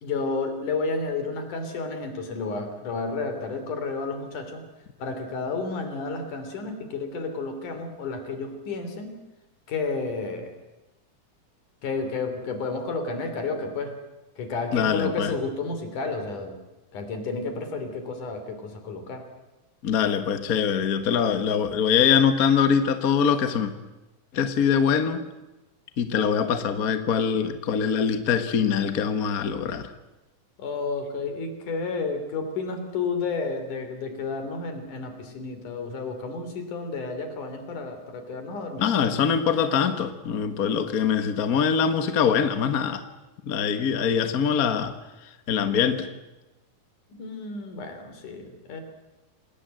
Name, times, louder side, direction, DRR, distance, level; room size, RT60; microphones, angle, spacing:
voice 1, 0.0-4.6 5.0-9.2 9.7-10.5 11.8-13.9 14.4-16.6 16.9-19.2 30.6-38.9 47.1-48.8, left 3 dB, 80° left, 8 dB, 4.6 m, -31 dB
voice 2, 14.7-15.3 19.8-23.7 24.3-25.2 26.0-29.9 38.8-43.0 43.4-44.9 45.5-46.1, left 7 dB, 40° left, 9 dB, 1.4 m, -23 dB
27.0 x 19.5 x 7.7 m, 1.0 s
omnidirectional pair, 3.5 m